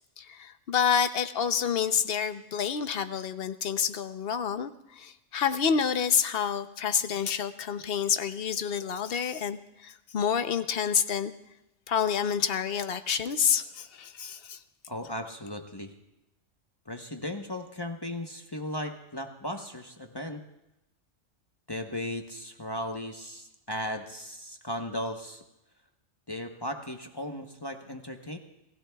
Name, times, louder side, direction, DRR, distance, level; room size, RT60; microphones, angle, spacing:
voice 1, 0.2-11.3 11.9-14.6, left 7 dB, 55° left, 11 dB, 0.8 m, -28 dB
voice 2, 14.9-15.9 16.9-20.4 21.7-25.4 26.3-28.4, left 1 dB, 20° left, 4 dB, 0.8 m, -36 dB
29.0 x 15.5 x 2.3 m, 0.90 s
omnidirectional pair, 1.3 m